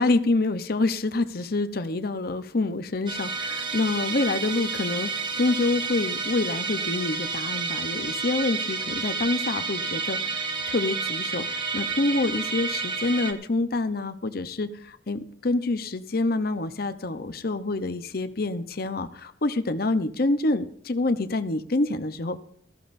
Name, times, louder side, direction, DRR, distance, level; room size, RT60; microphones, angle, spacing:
voice 1, 0.0-22.4, left 2 dB, 55° left, 10 dB, 0.8 m, -27 dB
Musical instrument, 3.1-13.3, right 4 dB, 25° right, 0.9 m, -30 dB
18.5 x 14.0 x 2.6 m, 0.62 s
head